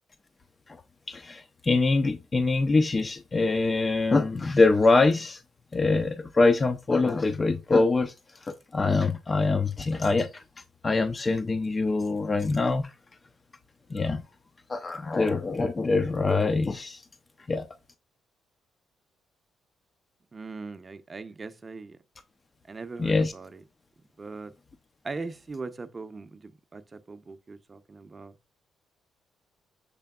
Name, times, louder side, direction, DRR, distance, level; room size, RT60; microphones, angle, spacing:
voice 1, 1.1-5.4 5.7-8.1 8.4-10.4 10.8-12.9 13.9-14.2 14.7-17.0 17.5-17.7 23.0-23.3, left 3 dB, 30° left, 0.4 m, -24 dB
voice 2, 20.3-22.0 22.7-23.6 24.2-24.5 25.0-28.3, right 3 dB, 30° right, 0.6 m, -40 dB
6.7 x 3.3 x 2.3 m
cardioid pair, 90°, 0 cm